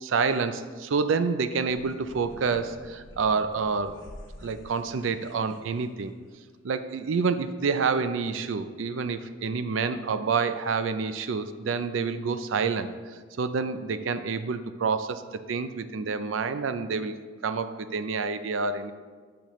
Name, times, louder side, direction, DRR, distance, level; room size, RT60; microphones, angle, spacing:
voice 1, 0.0-4.0 4.4-6.1 6.6-12.9 13.4-15.2 15.5-17.2 17.4-18.9, right 5 dB, 90° right, 11 dB, 0.4 m, -28 dB
sound 1, 1.7-6.5, left 1 dB, 80° left, 1.0 m, -48 dB
10.5 x 6.0 x 3.1 m, 1.5 s
head